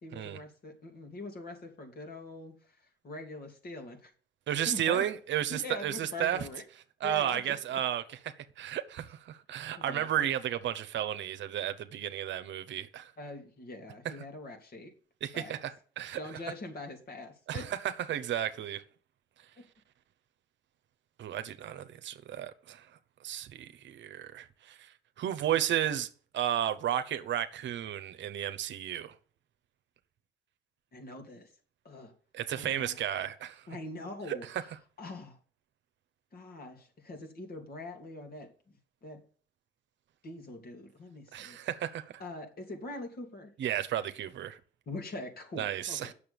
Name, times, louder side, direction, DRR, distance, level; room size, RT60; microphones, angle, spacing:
voice 1, 0.0-4.1 4.6-5.1 5.5-6.6 7.0-7.8 9.8-10.3 13.2-14.9 15.3-15.5 16.2-17.7 19.6-19.7 30.9-31.5 31.8-32.1 32.5-33.0 33.7-34.7 35.0-35.4 36.3-39.3 40.2-41.6 42.2-43.5 44.9-46.1, left 2 dB, 50° left, 2.7 m, -43 dB
voice 2, 4.5-6.4 7.0-8.2 8.6-13.1 15.2-16.2 17.5-17.8 18.1-18.8 21.2-22.9 23.2-24.9 25.2-26.1 26.3-29.1 32.3-33.6 34.3-34.4 41.3-42.1 43.6-44.6 45.6-46.1, right 11 dB, 70° right, 0.9 m, -33 dB
8.7 x 6.7 x 7.0 m
cardioid pair, 90°, 20 cm